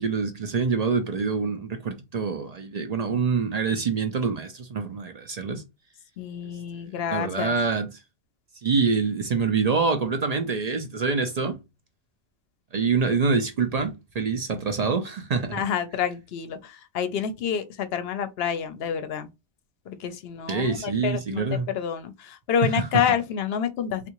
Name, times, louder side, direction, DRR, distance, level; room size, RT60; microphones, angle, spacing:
voice 1, 0.0-5.6 7.1-8.0 8.6-11.6 12.7-15.6 20.5-21.7 22.6-22.9, right 5 dB, 50° right, 0.5 m, -26 dB
voice 2, 6.2-7.5 15.5-19.3 19.9-24.1, left 8 dB, 70° left, 0.8 m, -28 dB
3.5 x 2.5 x 2.9 m
omnidirectional pair, 1.1 m